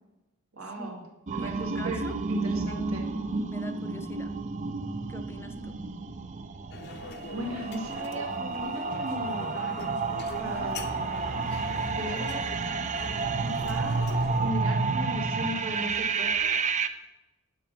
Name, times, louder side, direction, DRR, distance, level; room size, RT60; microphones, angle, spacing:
voice 1, 0.5-1.0 1.3-3.1 7.3-9.5 10.4-11.6 11.9-12.5 13.4-14.1 14.4-16.6, right 1 dB, 65° right, 1 dB, 2.2 m, -37 dB
voice 2, 1.3-2.2 2.7-2.8 3.5-4.4 5.1-5.8, equal, 10° left, 9 dB, 0.6 m, -43 dB
sound 1, 1.3-16.9, right 4 dB, 35° right, 0.5 m, -30 dB
sound 2, 6.7-14.5, left 4 dB, 50° left, 0.7 m, -42 dB
10.5 x 7.1 x 6.0 m, 1.0 s
head